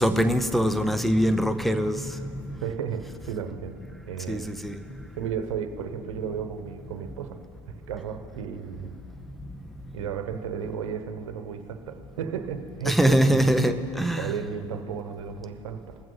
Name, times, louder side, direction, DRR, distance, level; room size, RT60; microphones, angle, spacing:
voice 1, 0.0-2.7 3.2-3.3 4.3-5.2 7.0-7.3 9.4-10.1 12.8-14.4, equal, ahead, 10 dB, 0.7 m, -24 dB
voice 2, 2.6-3.8 4.1-4.6 5.2-7.4 7.7-9.0 9.9-13.8 14.2-16.0, right 7 dB, 85° right, 8 dB, 1.0 m, -34 dB
20.5 x 7.6 x 3.9 m, 2.5 s
hypercardioid pair, 95°, 16 cm